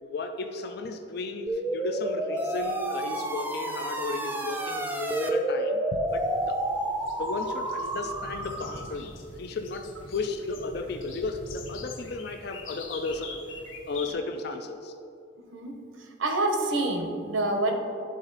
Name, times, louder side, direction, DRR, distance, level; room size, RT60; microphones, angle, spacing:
voice 1, 0.0-6.6 7.2-9.1 9.4-13.4 13.9-14.9, left 3 dB, 55° left, 6 dB, 0.4 m, -34 dB
sound 1, 1.5-8.9, right 1 dB, 10° right, 0.4 m, -30 dB
sound 2, 6.1-14.1, left 4 dB, 85° left, 0.8 m, -44 dB
voice 2, 15.5-17.7, right 2 dB, 90° right, 3 dB, 1.0 m, -27 dB
11.5 x 3.9 x 4.0 m, 2.5 s
head